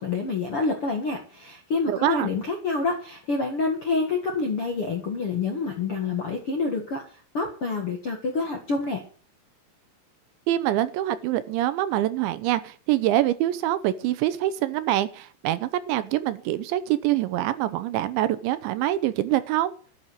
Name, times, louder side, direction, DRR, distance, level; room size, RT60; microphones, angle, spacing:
voice 1, 0.0-9.0, left 3 dB, 55° left, 3 dB, 1.6 m, -27 dB
voice 2, 1.9-2.3 10.5-19.7, right 14 dB, 80° right, 14 dB, 2.9 m, -25 dB
13.0 x 8.5 x 8.0 m, 0.41 s
omnidirectional pair, 5.6 m